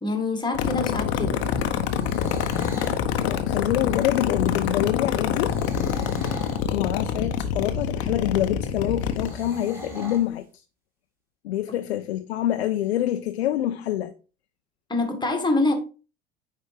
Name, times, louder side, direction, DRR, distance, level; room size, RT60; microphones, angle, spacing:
voice 1, 0.0-1.4 14.9-15.7, left 2 dB, 15° left, 1.6 m, -25 dB
sound 1, 0.5-9.3, left 8 dB, 50° left, 0.8 m, -26 dB
sound 2, 1.8-3.0 5.4-6.7 9.2-10.3, left 1 dB, 5° right, 2.5 m, -37 dB
voice 2, 3.2-5.6 6.7-10.4 11.4-14.1, left 12 dB, 70° left, 0.5 m, -26 dB
9.2 x 3.5 x 3.2 m
figure-of-eight pair, 70°, 33 cm